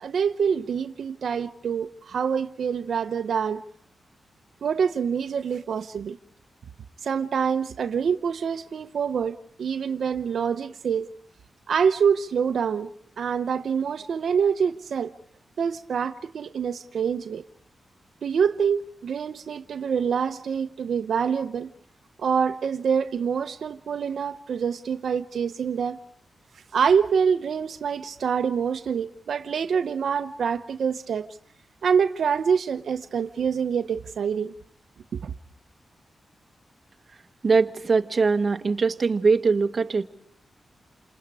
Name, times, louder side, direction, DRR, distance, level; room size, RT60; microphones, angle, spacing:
voice 1, 0.0-3.6 4.6-6.2 7.0-11.1 11.7-12.9 13.2-15.1 15.6-17.4 18.2-21.7 22.2-26.0 26.7-31.3 31.8-34.5 35.1-35.3, right 7 dB, 75° right, 0.9 m, -26 dB
voice 2, 37.4-40.0, right 4 dB, 40° right, 1.5 m, -21 dB
29.5 x 27.0 x 4.9 m
wide cardioid pair, 115°, 0 cm